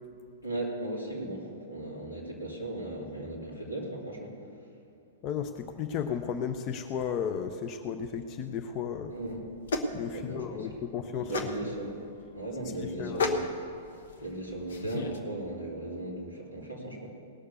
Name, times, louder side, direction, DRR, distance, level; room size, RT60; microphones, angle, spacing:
voice 1, 0.4-4.3 9.1-9.4 10.1-10.7 11.2-12.0 12.3-13.5 14.2-17.1, right 1 dB, 85° left, -4 dB, 3.2 m, -37 dB
voice 2, 5.2-9.1 9.9-11.3 13.0-13.2, left 7 dB, 35° left, 7 dB, 0.6 m, -34 dB
sound 1, 9.1-15.2, left 3 dB, 60° left, 1.1 m, -35 dB
18.5 x 6.6 x 7.0 m, 2.6 s
figure-of-eight pair, 105°, 0 cm